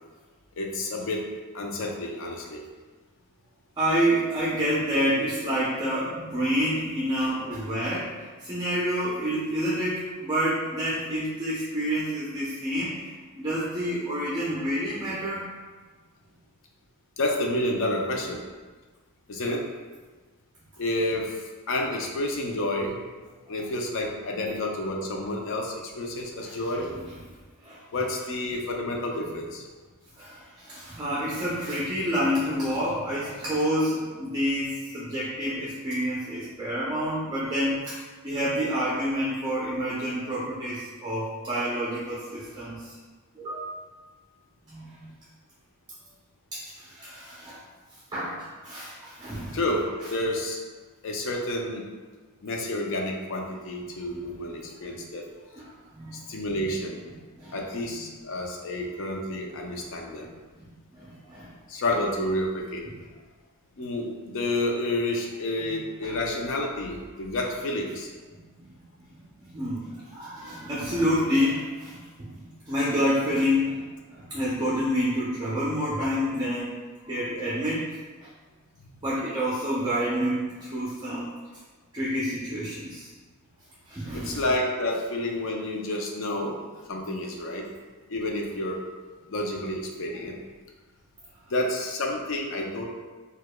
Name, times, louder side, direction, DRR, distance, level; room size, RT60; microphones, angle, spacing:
voice 1, 0.6-1.2 1.5-2.6 17.2-18.4 19.3-19.6 20.8-23.0 23.5-26.9 27.9-29.6 49.5-49.8 50.1-50.6 51.0-51.8 52.4-55.2 56.1-57.0 57.5-60.3 61.7-62.8 63.8-68.1 78.8-78.9 84.1-86.6 86.9-87.6 88.1-88.8 89.3-90.3 91.5-92.8, left 1 dB, 65° left, 1 dB, 0.5 m, -29 dB
voice 2, 3.8-15.5 26.4-26.9 27.6-27.8 30.2-42.9 43.3-43.9 44.7-45.1 46.5-47.6 48.1-49.6 54.9-55.0 55.6-55.7 55.9-56.2 57.4-57.6 60.9-61.5 65.6-65.8 66.0-66.1 68.6-68.7 69.5-76.8 77.0-77.9 79.0-81.3 81.9-83.1 83.9-84.4, equal, 20° right, -8 dB, 0.5 m, -28 dB
4.6 x 2.3 x 2.2 m, 1.4 s
head